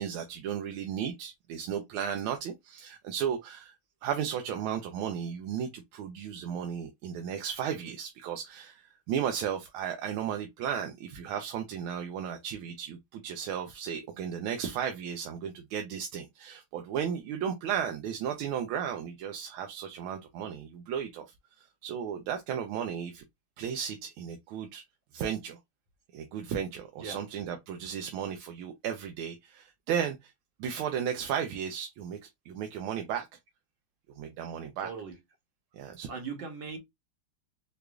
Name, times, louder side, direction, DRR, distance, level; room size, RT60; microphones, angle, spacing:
voice 1, 0.0-3.7 4.0-21.2 21.6-23.2 23.6-24.8 25.1-25.6 26.1-30.3 30.6-33.3 34.2-34.9 35.7-36.1, right 8 dB, 85° right, 1.4 m, -34 dB
voice 2, 34.8-35.1 36.1-36.8, right 5 dB, 65° right, 1.5 m, -38 dB
4.8 x 2.4 x 2.3 m
omnidirectional pair, 2.3 m